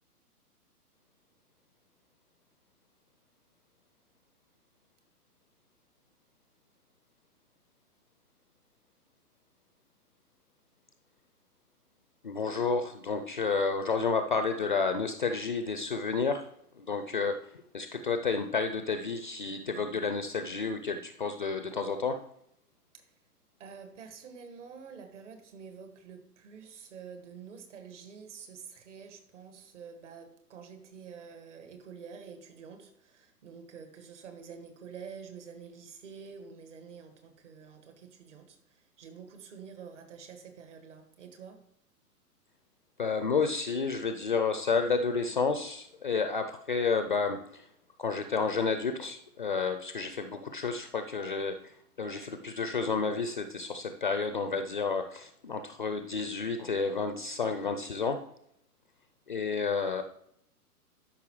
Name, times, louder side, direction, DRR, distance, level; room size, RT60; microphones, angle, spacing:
voice 1, 12.2-16.4 16.8-17.4 17.7-22.2 43.0-47.6 48.0-51.6 52.0-58.2 59.3-60.0, left 4 dB, 35° left, 8 dB, 0.4 m, -30 dB
voice 2, 23.6-41.6, right 6 dB, 50° right, 6 dB, 1.8 m, -48 dB
12.5 x 5.6 x 3.0 m, 0.72 s
figure-of-eight pair, 120°, 47 cm